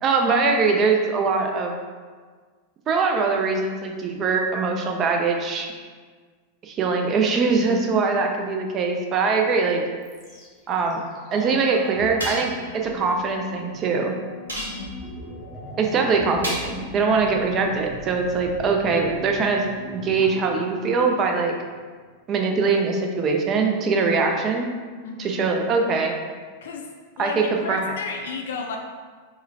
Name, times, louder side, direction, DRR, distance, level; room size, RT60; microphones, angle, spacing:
voice 1, 0.0-1.7 2.9-5.7 6.6-9.8 10.7-11.0 11.3-14.1 15.8-19.6 19.9-21.5 22.3-24.7 25.2-26.2 27.2-27.9, right 4 dB, 30° right, 2 dB, 0.4 m, -22 dB
sound 1, 10.0-22.0 22.3-22.4, equal, 10° right, 0.9 m, -40 dB
sound 2, 12.2-12.7 14.5-15.1 16.4-16.9, right 1 dB, 75° right, 0.6 m, -31 dB
voice 2, 14.6-15.0 22.7-22.8 25.0-25.4 26.6-26.9 27.2-28.8, left 5 dB, 60° left, 2 dB, 0.4 m, -33 dB
3.7 x 2.1 x 2.7 m, 1.5 s
figure-of-eight pair, 90°, 0 cm